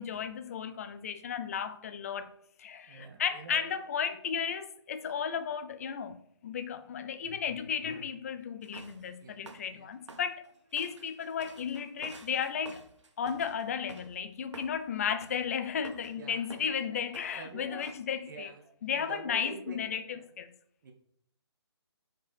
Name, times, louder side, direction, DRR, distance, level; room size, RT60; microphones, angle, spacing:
voice 1, 0.0-2.3 2.6-10.5 10.7-12.8 13.2-18.5 18.8-20.5, left 7 dB, 30° left, 0.5 m, -34 dB
voice 2, 2.9-4.2 9.2-9.4 9.7-10.0 16.1-17.9 18.3-20.2 20.8-20.9, right 4 dB, 45° right, 1.5 m, -48 dB
sound 1, 8.6-9.1 9.5-9.7 10.1-14.2 14.5-14.8 15.2-15.5 15.8-16.2 16.5-16.8 17.1-17.4 17.8-17.9, right 3 dB, 80° right, 1.1 m, -50 dB
7.1 x 5.1 x 4.3 m
hypercardioid pair, 160°, 15 cm